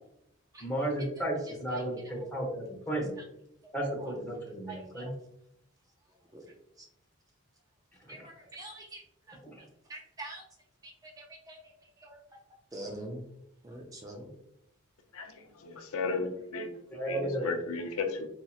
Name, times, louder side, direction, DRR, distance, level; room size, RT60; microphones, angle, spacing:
voice 1, 0.6-3.1 3.7-5.1 8.0-8.1 9.5-9.6 16.9-17.5, right 1 dB, 10° left, -3 dB, 0.8 m, -33 dB
voice 2, 1.2-2.3 3.2-3.3 3.6-4.1 4.6-5.1 6.1-6.9 8.1-10.5 10.8-12.2 12.7-13.2 13.6-14.3, right 1 dB, 15° right, 1 dB, 0.4 m, -46 dB
voice 3, 15.6-16.7 17.1-18.3, left 4 dB, 70° left, 5 dB, 0.5 m, -34 dB
4.2 x 2.8 x 2.3 m, 0.77 s
head